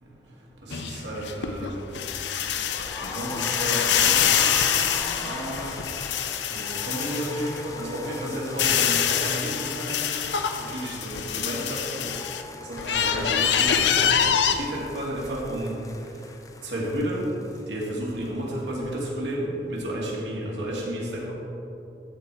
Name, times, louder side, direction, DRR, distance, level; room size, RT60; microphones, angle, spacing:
voice 1, 0.6-1.7 3.0-4.9 5.2-5.7 6.5-10.2 10.6-12.2 12.7-14.2 14.5-15.8 16.6-17.2 17.7-21.3, right 1 dB, 85° right, -4 dB, 2.1 m, -32 dB
sound 1, 0.7-7.6 8.0-12.4 12.8-14.5, left 8 dB, 80° left, 0.6 m, -25 dB
sound 2, 2.7-18.6 18.8-18.9 19.2-19.3, left 3 dB, 20° left, 0.3 m, -41 dB
13.5 x 4.8 x 4.3 m, 2.9 s
head